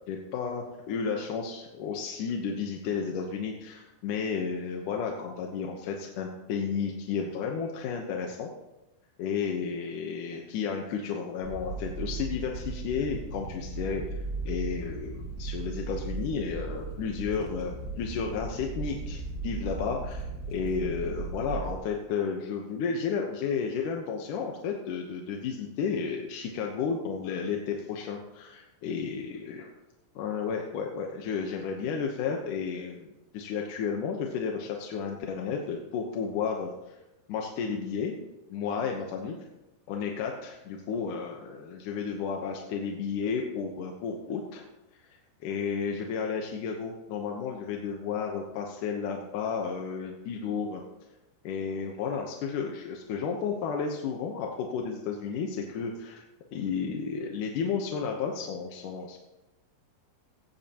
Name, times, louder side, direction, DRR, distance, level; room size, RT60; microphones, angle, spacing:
voice 1, 0.1-8.5 9.2-14.0 14.4-29.6 30.2-36.7 37.3-38.2 38.5-39.4 39.9-44.6 45.4-50.8 51.4-56.2 56.5-59.2, left 6 dB, 65° left, 1 dB, 2.2 m, -32 dB
sound 1, 11.4-21.7, right 3 dB, 30° right, 2.3 m, -37 dB
18.0 x 14.5 x 3.0 m, 0.98 s
omnidirectional pair, 4.7 m